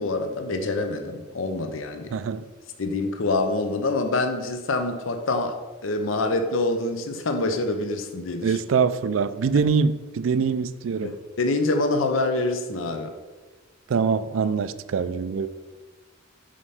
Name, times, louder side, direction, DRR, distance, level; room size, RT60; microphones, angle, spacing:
voice 1, 0.0-2.1 2.8-5.6 5.8-8.6 9.5-9.6 11.0-13.1, left 2 dB, 85° left, 6 dB, 0.7 m, -26 dB
voice 2, 2.1-2.5 8.4-11.2 13.9-15.5, right 5 dB, 85° right, 14 dB, 0.4 m, -24 dB
5.4 x 5.0 x 5.6 m, 1.3 s
head